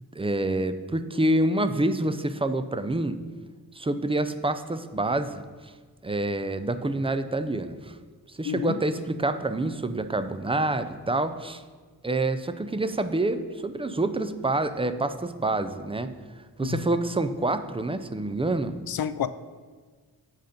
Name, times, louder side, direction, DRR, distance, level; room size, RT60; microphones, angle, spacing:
voice 1, 0.1-3.2 3.7-5.4 6.0-7.9 8.4-11.6 12.0-16.1 16.6-18.8, right 2 dB, 15° right, 10 dB, 0.4 m, -27 dB
voice 2, 8.4-8.8 16.6-16.8 18.9-19.3, left 9 dB, 60° left, 13 dB, 0.5 m, -29 dB
8.1 x 5.1 x 5.2 m, 1.5 s
wide cardioid pair, 80°, 42 cm